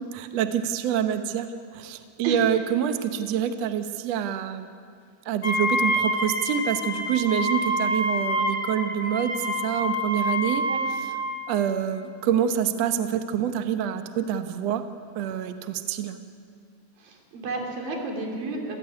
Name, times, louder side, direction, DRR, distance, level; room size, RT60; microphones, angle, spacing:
voice 1, 0.0-4.7 5.3-10.6 11.5-14.9 15.2-16.2, right 9 dB, 65° right, 8 dB, 1.8 m, -26 dB
Wind instrument woodwind instrument, 5.4-11.3, equal, 45° left, 4.5 m, -27 dB
voice 2, 17.0-18.8, right 3 dB, 80° right, 2 dB, 5.2 m, -31 dB
27.0 x 17.0 x 9.6 m, 2.2 s
omnidirectional pair, 4.1 m